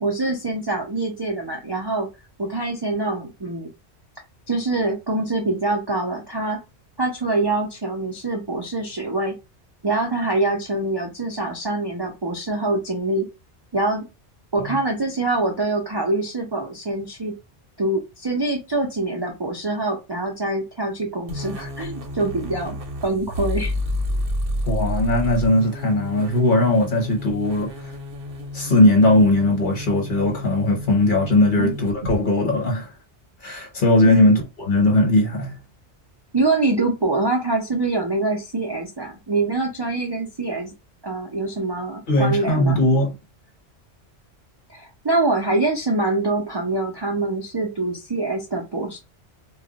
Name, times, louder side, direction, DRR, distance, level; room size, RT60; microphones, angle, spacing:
voice 1, 0.0-2.1 2.4-3.7 4.5-6.6 7.0-9.4 9.8-13.3 13.7-14.1 14.5-17.3 17.8-22.8 23.0-23.7 31.6-31.7 34.0-34.2 36.3-40.7 41.0-42.8 44.7-49.0, right 2 dB, 40° right, 0.4 m, -24 dB
sound 1, 21.3-32.2, left 1 dB, 60° right, 0.8 m, -30 dB
voice 2, 24.7-27.7 28.5-32.9 33.4-34.4 34.7-35.6 42.1-43.1, left 1 dB, 50° left, 1.0 m, -18 dB
2.3 x 2.1 x 3.8 m
omnidirectional pair, 1.2 m